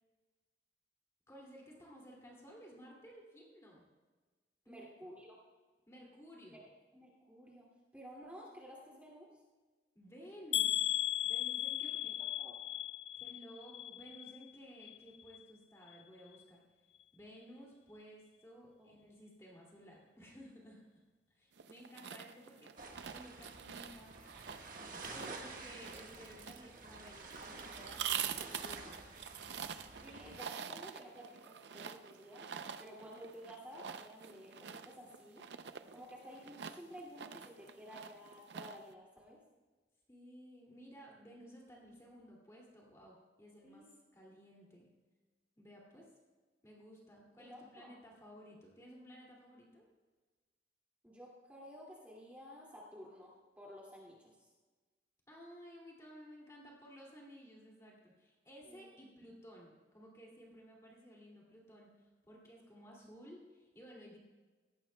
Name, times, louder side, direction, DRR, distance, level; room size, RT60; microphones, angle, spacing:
voice 1, 1.3-3.8 4.6-4.9 5.9-6.6 10.0-12.1 13.2-16.6 17.1-21.0 21.4-22.7 23.1-24.2 25.1-29.1 40.1-43.9 44.1-44.9 45.6-46.1 46.6-49.8 55.3-64.2, equal, 15° left, -3 dB, 2.4 m, -56 dB
voice 2, 4.7-5.4 6.6-7.7 7.9-9.3 11.8-12.6 18.8-18.9 30.0-32.5 32.8-35.4 35.9-39.4 43.6-43.9 47.4-47.9 51.0-54.2 58.6-58.9, equal, 10° right, -5 dB, 2.2 m, -53 dB
sound 1, 10.5-14.5 14.8-15.4 15.9-16.0 16.3-16.4, left 13 dB, 80° left, 0.3 m, -37 dB
sound 2, 21.6-38.9, right 8 dB, 80° right, 0.5 m, -46 dB
sound 3, 22.8-30.4, right 3 dB, 50° right, 1.4 m, -50 dB
18.0 x 15.5 x 2.2 m, 1.3 s
head